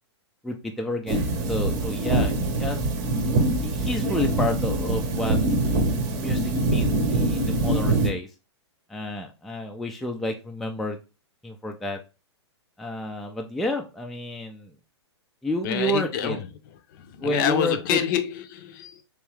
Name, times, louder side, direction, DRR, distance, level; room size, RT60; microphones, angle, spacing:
voice 1, 0.4-2.8 3.6-5.4 6.1-8.3 8.9-11.0 11.4-12.0 12.8-14.7 15.4-16.4 17.2-18.0, left 1 dB, ahead, 0.3 m, -30 dB
sound 1, 1.1-8.1, right 2 dB, 40° right, 0.8 m, -24 dB
voice 2, 15.6-16.5 17.1-19.0, left 9 dB, 45° left, 0.6 m, -26 dB
3.5 x 3.1 x 3.1 m
hypercardioid pair, 120°, 15 cm